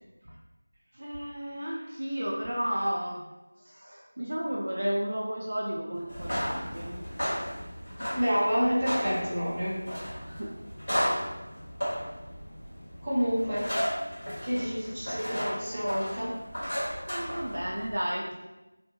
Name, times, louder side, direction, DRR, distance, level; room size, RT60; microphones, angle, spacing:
voice 1, 0.9-3.3 3.6-7.3 10.2-10.6 10.9-11.2 17.1-18.4, equal, 55° right, -3 dB, 0.4 m, -33 dB
sound 1, 6.0-17.9, equal, 45° left, 1.2 m, -34 dB
voice 2, 8.1-9.7 13.0-13.7 14.4-16.3, equal, 10° right, -12 dB, 0.7 m, -28 dB
2.3 x 2.1 x 3.1 m, 1.0 s
figure-of-eight pair, 175°, 0 cm